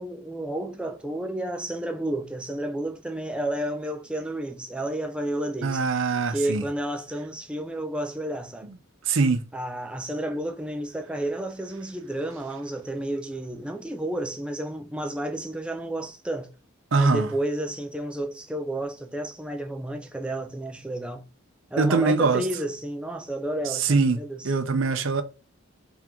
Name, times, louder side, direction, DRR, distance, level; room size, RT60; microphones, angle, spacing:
voice 1, 0.0-8.8 9.5-16.5 16.9-21.2 21.7-24.5, right 1 dB, 5° right, 0.4 m, -31 dB
voice 2, 5.6-6.6 9.1-9.4 16.9-17.3 21.8-22.4 23.8-24.2 24.4-25.2, right 4 dB, 60° right, 0.6 m, -22 dB
3.5 x 2.9 x 3.6 m
head